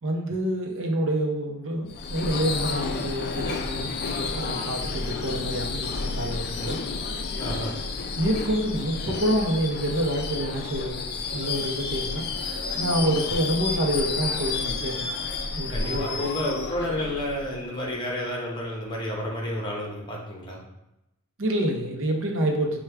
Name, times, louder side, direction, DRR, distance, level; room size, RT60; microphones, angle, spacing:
voice 1, 0.0-6.8 8.2-11.0 11.3-15.1 15.5-16.3 21.4-22.8, right 1 dB, 60° right, 1 dB, 0.7 m, -27 dB
Subway metro underground / Screech, 1.9-17.8, left 4 dB, 50° left, 0.3 m, -31 dB
voice 2, 7.4-7.7 15.7-20.6, left 1 dB, 20° left, -2 dB, 0.8 m, -30 dB
4.6 x 2.2 x 3.3 m, 0.90 s
head